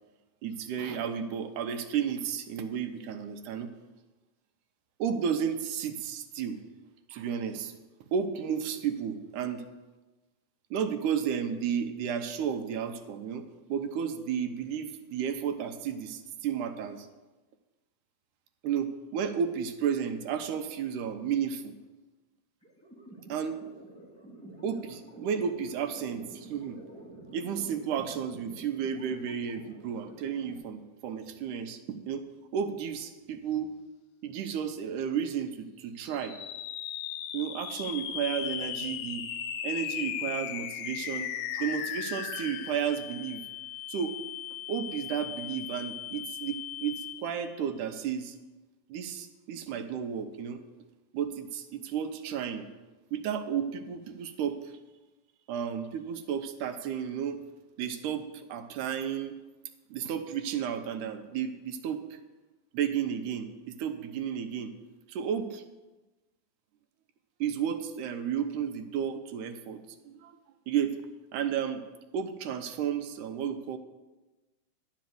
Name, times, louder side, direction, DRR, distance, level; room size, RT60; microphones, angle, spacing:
voice 1, 0.4-3.7 5.0-6.6 7.1-7.7 8.1-9.6 10.7-17.1 18.6-21.7 23.3-23.6 24.6-26.8 27.3-32.3 32.5-33.7 34.2-36.4 37.3-39.2 39.6-43.4 43.9-44.2 44.7-48.4 48.9-50.6 51.1-52.7 53.1-54.7 55.5-57.4 57.8-59.3 59.9-62.2 62.7-64.7 65.1-65.6 67.4-70.4 70.7-71.0 71.3-71.8 72.1-73.8, right 8 dB, 85° right, 7 dB, 2.3 m, -32 dB
sound 1, 22.6-30.6, right 1 dB, 5° left, 1.2 m, -49 dB
sound 2, 36.0-47.5, left 10 dB, 85° left, 2.1 m, -37 dB
11.5 x 5.3 x 7.7 m, 1.2 s
omnidirectional pair, 3.5 m